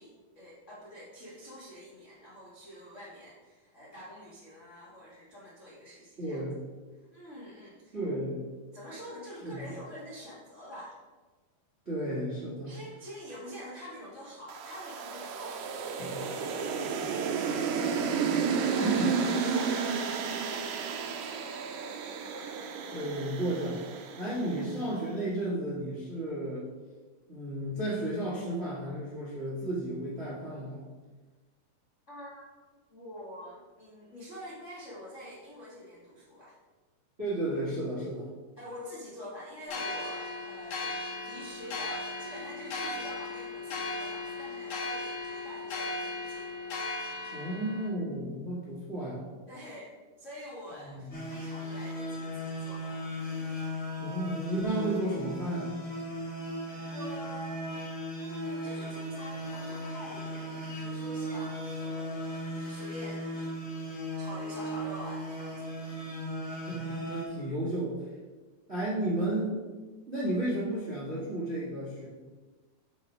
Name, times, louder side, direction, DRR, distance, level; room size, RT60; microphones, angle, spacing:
voice 1, 0.0-6.4 7.1-8.0 8.7-10.9 12.6-18.0 18.6-21.5 24.3-24.7 32.1-36.6 38.6-41.0 41.2-46.5 49.5-53.0 56.9-57.6 58.2-60.5 60.7-63.4 64.2-65.6, equal, 80° left, -7 dB, 0.6 m, -46 dB
voice 2, 6.2-6.6 7.9-8.5 9.4-9.7 11.8-12.8 16.0-16.2 18.8-19.1 22.3-22.5 22.9-23.8 24.2-26.7 27.3-30.9 37.2-38.3 47.3-49.3 50.8-51.1 54.0-55.8 66.5-68.0 68.7-69.6 70.1-72.1, right 1 dB, 70° right, -8 dB, 0.6 m, -33 dB
sound 1, 14.5-24.8, right 6 dB, 85° right, 1.9 m, -32 dB
sound 2, 39.7-47.9, left 3 dB, 55° left, 2.5 m, -37 dB
sound 3, 51.1-67.2, equal, 30° left, 1.3 m, -37 dB
6.5 x 5.3 x 5.0 m, 1.3 s
omnidirectional pair, 4.3 m